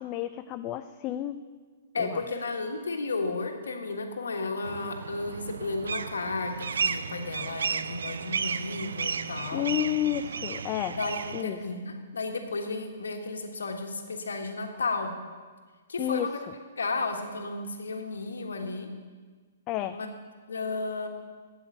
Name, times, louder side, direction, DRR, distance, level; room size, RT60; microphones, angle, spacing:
voice 1, 0.0-1.4 2.0-2.2 9.5-11.0 11.3-11.6 16.0-16.3 19.7-20.0, left 12 dB, 30° left, 9 dB, 0.4 m, -31 dB
voice 2, 1.9-9.7 10.9-15.1 15.9-16.3 16.8-18.9 19.9-20.1 20.5-21.1, left 3 dB, 80° left, 4 dB, 1.5 m, -33 dB
sound 1, 4.6-11.4, right 6 dB, 75° right, 0.4 m, -33 dB
8.6 x 8.0 x 9.0 m, 1.5 s
hypercardioid pair, 125°, 0 cm